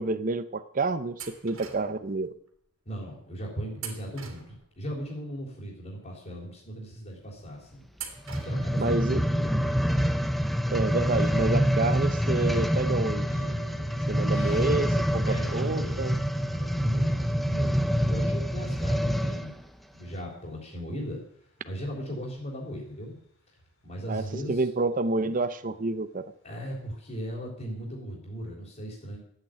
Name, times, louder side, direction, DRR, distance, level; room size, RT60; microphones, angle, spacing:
voice 1, 0.0-2.3 8.8-9.2 10.7-13.3 14.1-16.1 24.1-26.2, right 3 dB, 40° right, 11 dB, 0.7 m, -29 dB
sound 1, 1.2-2.1 3.8-4.9 7.9-8.9, right 7 dB, 60° right, 2.7 m, -42 dB
voice 2, 2.9-7.8 8.3-9.8 10.2-10.4 10.9-11.1 14.3-14.6 15.2-16.0 16.5-19.6 19.9-21.2 21.6-23.2 23.8-24.7 26.4-29.2, equal, 35° left, -5 dB, 3.7 m, -38 dB
sound 2, 8.2-19.5 20.1-20.2, equal, ahead, 0.7 m, -26 dB
sound 3, 11.3-15.7 16.0-20.1 20.8-20.9 22.1-22.2 22.7-23.2 23.5-24.5, right 1 dB, 55° left, 5.1 m, -49 dB
14.0 x 9.0 x 8.9 m, 0.69 s
head